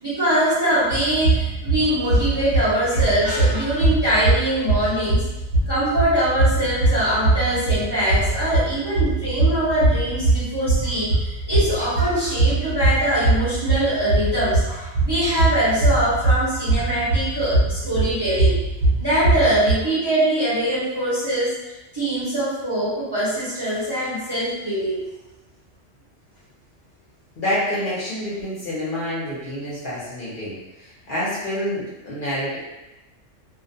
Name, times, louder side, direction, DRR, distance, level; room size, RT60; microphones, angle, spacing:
voice 1, 0.0-5.2 5.7-18.6 19.0-21.5 21.9-25.0, right 1 dB, 25° right, -11 dB, 0.6 m, -22 dB
sound 1, 0.9-19.7, right 2 dB, 70° right, 1.0 m, -21 dB
voice 2, 27.4-32.6, left 1 dB, 50° left, -8 dB, 0.8 m, -27 dB
2.4 x 2.1 x 2.6 m, 1.0 s
omnidirectional pair, 1.2 m